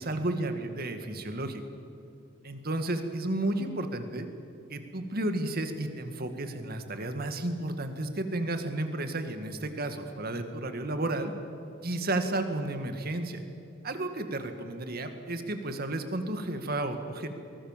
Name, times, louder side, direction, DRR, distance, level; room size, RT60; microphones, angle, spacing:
voice 1, 0.0-1.6 2.4-4.3 4.7-11.3 11.8-13.4 13.8-17.3, right 2 dB, 50° right, 7 dB, 2.1 m, -32 dB
24.0 x 20.0 x 7.5 m, 2.7 s
head